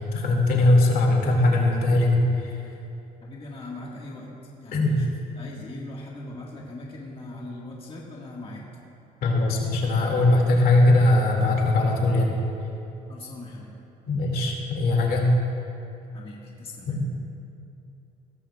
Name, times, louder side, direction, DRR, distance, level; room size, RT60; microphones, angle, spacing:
voice 1, 0.0-2.6 4.7-5.0 9.2-12.4 14.1-15.3 16.9-17.2, left 2 dB, 65° left, 0 dB, 2.2 m, -20 dB
voice 2, 3.2-8.8 13.1-13.7 16.1-17.0, left 2 dB, 35° left, -3 dB, 1.7 m, -40 dB
17.5 x 13.5 x 2.4 m, 2.8 s
cardioid pair, 110°, 17 cm